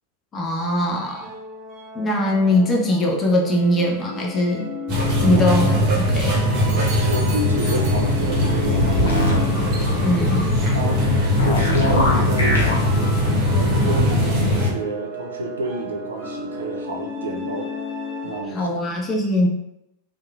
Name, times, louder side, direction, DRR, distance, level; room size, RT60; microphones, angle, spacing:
voice 1, 0.3-1.3 1.9-4.7 5.2-6.4 10.0-10.6 18.5-19.5, left 1 dB, 25° left, -1 dB, 0.4 m, -21 dB
sound 1, 1.0-18.7, left 1 dB, 20° right, 1.2 m, -34 dB
sound 2, 4.9-14.7, left 1 dB, 40° right, 0.8 m, -20 dB
voice 2, 5.1-5.9 7.0-9.3 10.7-11.1 11.4-12.6 13.5-17.7 18.2-18.8, right 1 dB, 70° right, 2 dB, 0.4 m, -29 dB
sound 3, 8.7-9.4 11.4-12.7, left 1 dB, 75° left, 0.6 m, -21 dB
2.9 x 2.1 x 2.3 m, 0.86 s
figure-of-eight pair, 90°, 0 cm